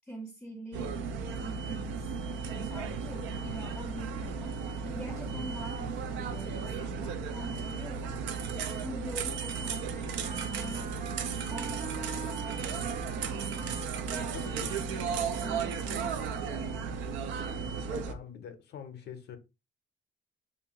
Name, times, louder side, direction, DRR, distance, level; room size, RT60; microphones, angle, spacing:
voice 1, 0.1-1.0 1.4-2.1 2.5-8.3 8.8-11.0 11.5-12.9 14.1-17.1, equal, 5° left, 0.5 m, -45 dB
sound 1, 0.7-18.1, right 5 dB, 85° right, 0.4 m, -35 dB
voice 2, 5.3-5.6 14.2-14.7 17.9-19.4, left 7 dB, 60° left, 0.6 m, -44 dB
Wind instrument woodwind instrument, 9.7-15.0, right 5 dB, 45° right, 0.7 m, -44 dB
2.4 x 2.3 x 2.8 m
cardioid pair, 85°, 19 cm